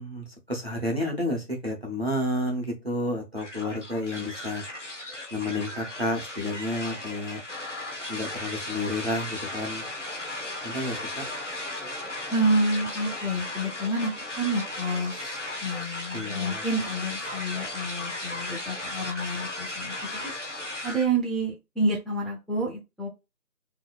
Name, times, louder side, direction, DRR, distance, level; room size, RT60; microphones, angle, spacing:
voice 1, 0.0-4.6 5.3-7.4 8.1-9.8 10.6-11.2 16.1-16.6, left 1 dB, 40° right, 0 dB, 0.8 m, -30 dB
sound 1, 3.4-21.1, left 2 dB, 50° left, 0.6 m, -36 dB
voice 2, 12.3-14.1 14.4-19.9 20.8-23.1, right 1 dB, ahead, -3 dB, 0.5 m, -28 dB
3.2 x 2.7 x 2.3 m, 0.24 s
figure-of-eight pair, 180°, 48 cm